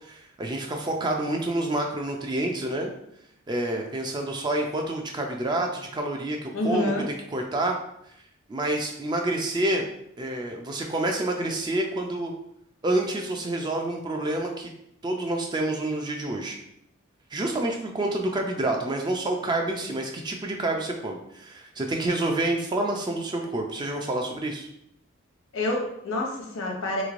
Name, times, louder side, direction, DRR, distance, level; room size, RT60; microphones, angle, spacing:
voice 1, 0.0-2.9 3.5-6.9 7.3-7.8 8.5-9.8 10.2-12.3 12.8-14.7 15.0-16.6 17.3-24.7, right 2 dB, 20° right, 2 dB, 0.3 m, -28 dB
voice 2, 6.5-7.0 25.5-27.0, left 1 dB, 75° left, 0 dB, 0.8 m, -27 dB
3.5 x 3.1 x 2.5 m, 0.76 s
head